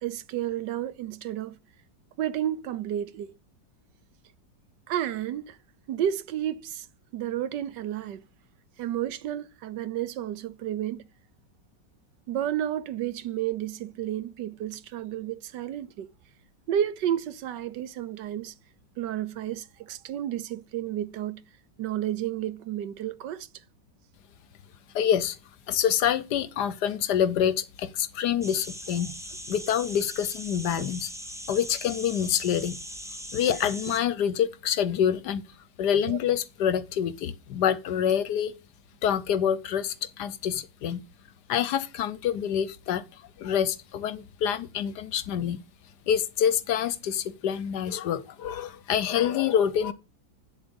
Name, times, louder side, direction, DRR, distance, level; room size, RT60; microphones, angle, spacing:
voice 1, 0.0-1.5 2.2-3.3 4.9-5.6 5.9-6.9 7.1-8.2 8.8-11.0 12.3-16.1 16.7-18.5 19.0-21.4 21.8-23.5 30.8-30.9 33.5-33.6 36.0-36.2, right 11 dB, 70° right, 1.3 m, -31 dB
voice 2, 24.9-25.4 25.7-29.1 29.5-31.1 31.5-32.8 33.3-35.4 35.8-38.6 39.0-41.0 41.5-43.0 43.4-45.6 46.1-49.9, left 9 dB, 70° left, 1.2 m, -26 dB
sound 1, 28.4-34.0, equal, 5° right, 0.5 m, -40 dB
8.3 x 7.6 x 5.2 m
omnidirectional pair, 2.0 m